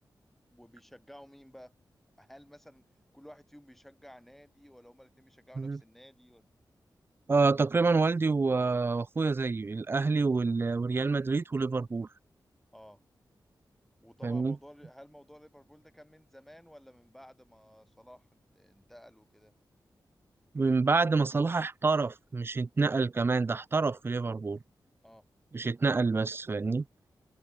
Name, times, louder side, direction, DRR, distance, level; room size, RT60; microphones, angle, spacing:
voice 1, 0.5-1.7 2.2-2.9 3.1-6.5 12.7-13.0 14.0-19.5 25.0-25.2, equal, 5° left, 4.5 m, -54 dB
voice 2, 7.3-12.1 14.2-14.6 20.5-24.6 25.5-26.8, right 4 dB, 30° right, 0.5 m, -27 dB
wide cardioid pair, 120°, 8 cm